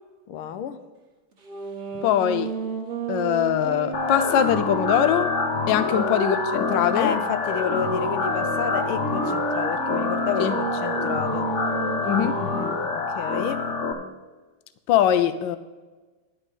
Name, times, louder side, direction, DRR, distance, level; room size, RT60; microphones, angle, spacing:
voice 1, 0.3-0.8 1.9-2.0 5.9-6.0 6.9-11.5 12.2-13.7, left 9 dB, 90° left, 9 dB, 1.6 m, -31 dB
sound 1, 1.4-6.9 7.5-12.9, right 5 dB, 40° right, 1.2 m, -33 dB
voice 2, 2.0-2.5 3.1-5.3 5.7-7.1 10.4-10.6 12.1-12.4 14.9-15.6, left 10 dB, 70° left, 11 dB, 1.2 m, -22 dB
sound 2, 3.9-13.9, left 4 dB, 50° left, 0.9 m, -26 dB
11.0 x 5.2 x 8.2 m, 1.2 s
omnidirectional pair, 2.3 m